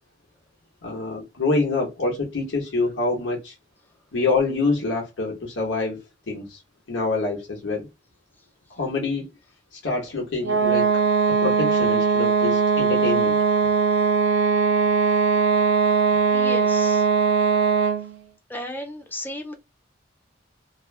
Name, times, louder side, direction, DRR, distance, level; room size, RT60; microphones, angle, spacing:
voice 1, 0.8-3.5 4.1-6.6 6.9-7.9 8.7-9.3 9.8-10.9 11.4-13.4, left 3 dB, 80° left, 0.8 m, -26 dB
sound 1, 10.4-18.1, right 5 dB, 80° right, 0.4 m, -20 dB
voice 2, 16.3-17.1 18.5-19.5, left 1 dB, 10° left, 0.6 m, -34 dB
2.4 x 2.1 x 2.3 m
head